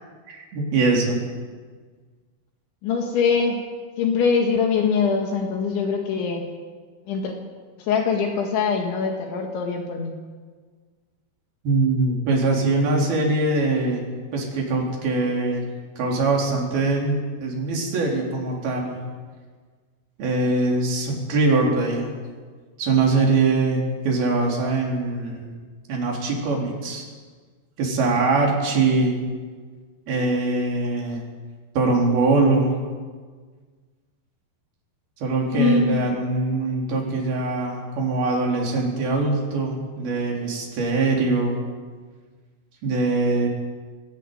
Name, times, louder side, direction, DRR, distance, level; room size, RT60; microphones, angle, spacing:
voice 1, 0.3-1.2 11.6-14.0 14.3-15.6 16.0-19.0 20.2-22.1 22.8-25.5 25.9-27.0 27.8-29.2 30.1-31.2 31.8-32.7 35.2-41.5 42.8-43.5, right 3 dB, 55° right, -1 dB, 5.6 m, -22 dB
voice 2, 2.8-3.6 4.0-6.4 7.1-7.4 7.8-10.2 35.5-36.2, left 5 dB, 75° left, 2 dB, 4.2 m, -23 dB
19.0 x 18.5 x 9.4 m, 1.5 s
omnidirectional pair, 5.5 m